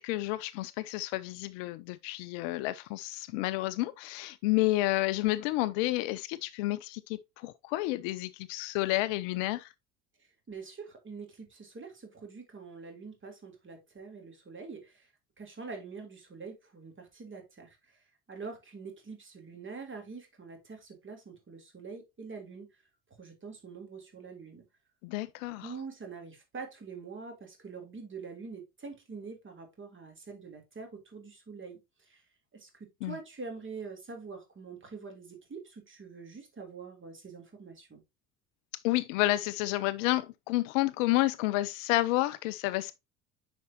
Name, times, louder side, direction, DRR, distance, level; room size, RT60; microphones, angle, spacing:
voice 1, 0.0-9.7 25.0-25.7 33.0-33.2 38.8-43.0, left 18 dB, 55° left, 0.5 m, -30 dB
voice 2, 10.5-15.1 15.4-22.7 23.2-24.6 25.6-31.8 32.1-32.2 32.5-38.0, right 4 dB, 25° right, 3.4 m, -45 dB
9.4 x 5.2 x 2.9 m
figure-of-eight pair, 65°, 47 cm